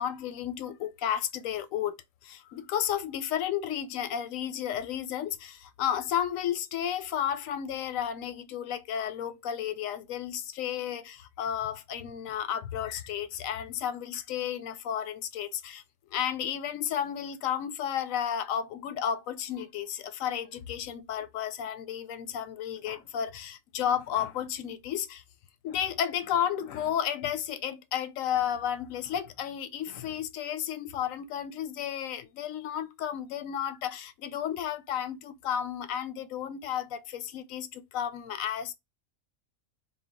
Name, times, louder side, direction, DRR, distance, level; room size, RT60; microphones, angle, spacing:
voice 1, 0.0-1.9 2.2-15.8 16.1-25.2 25.6-38.7, left 9 dB, 85° left, 1.0 m, -32 dB
3.9 x 2.2 x 3.6 m
omnidirectional pair, 1.4 m